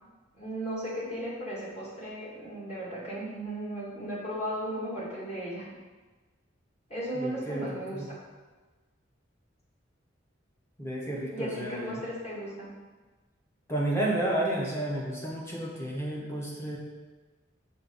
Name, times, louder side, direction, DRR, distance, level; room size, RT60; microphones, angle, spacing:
voice 1, 0.4-5.7 6.9-8.2 11.3-12.7, right 1 dB, 35° left, -7 dB, 2.1 m, -36 dB
voice 2, 7.1-8.1 10.8-12.0 13.7-16.8, right 1 dB, 15° left, -4 dB, 1.1 m, -31 dB
5.8 x 3.5 x 5.5 m, 1.3 s
head